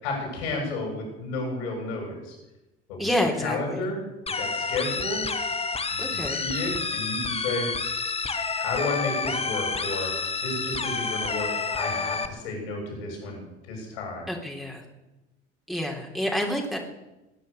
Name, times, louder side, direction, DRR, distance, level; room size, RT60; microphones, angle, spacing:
voice 1, 0.0-2.2 2.9-3.1 3.4-4.0 4.4-5.2 5.9-7.7 8.6-10.1 10.4-13.4 13.7-14.3, left 2 dB, 65° left, 1 dB, 7.4 m, -32 dB
voice 2, 3.0-3.9 6.0-6.4 14.3-14.8 15.7-16.8, left 1 dB, ahead, -1 dB, 3.4 m, -28 dB
sound 1, 4.3-12.3, left 4 dB, 15° left, 1.4 m, -29 dB
19.5 x 10.0 x 6.8 m, 1.0 s
figure-of-eight pair, 60°, 34 cm